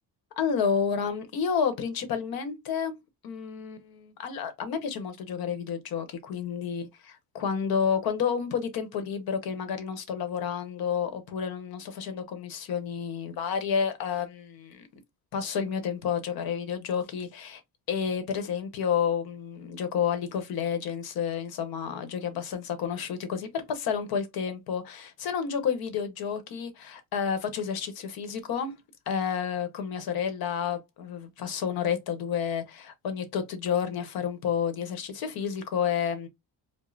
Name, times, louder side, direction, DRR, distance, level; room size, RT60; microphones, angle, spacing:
voice 1, 0.4-3.0 3.2-14.9 15.3-17.6 17.9-28.8 29.1-36.3, left 7 dB, 60° left, 0.9 m, -30 dB
4.9 x 2.0 x 2.5 m
cardioid pair, 170°, 41 cm